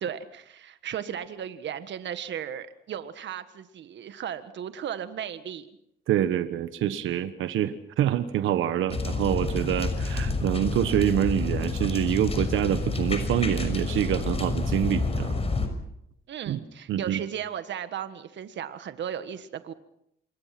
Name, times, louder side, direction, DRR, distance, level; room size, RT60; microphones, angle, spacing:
voice 1, 0.0-5.7 16.3-19.7, right 9 dB, 65° right, 11 dB, 1.6 m, -35 dB
voice 2, 6.1-15.3 16.5-16.6 16.9-17.2, right 11 dB, 85° right, 11 dB, 1.3 m, -26 dB
sound 1, 8.9-15.7, left 3 dB, 30° left, 6.1 m, -29 dB
27.5 x 23.0 x 6.0 m, 0.76 s
cardioid pair, 90°, 20 cm